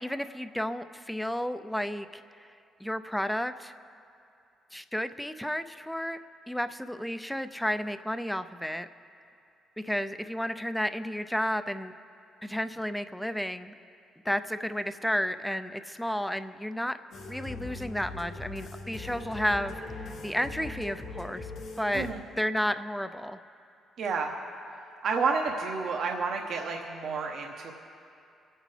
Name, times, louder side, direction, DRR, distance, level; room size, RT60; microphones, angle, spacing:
voice 1, 0.0-2.5 2.8-3.7 4.7-6.2 6.5-8.9 9.8-11.9 12.4-13.7 14.3-17.0 17.3-21.5 21.8-22.1 22.4-23.4, equal, 5° left, 10 dB, 0.5 m, -32 dB
sound 1, 17.1-22.1, left 3 dB, 75° left, 1.6 m, -40 dB
voice 2, 24.0-24.3 25.0-27.7, right 4 dB, 65° right, 1 dB, 1.0 m, -30 dB
26.5 x 8.9 x 3.3 m, 2.6 s
cardioid pair, 90°, 0 cm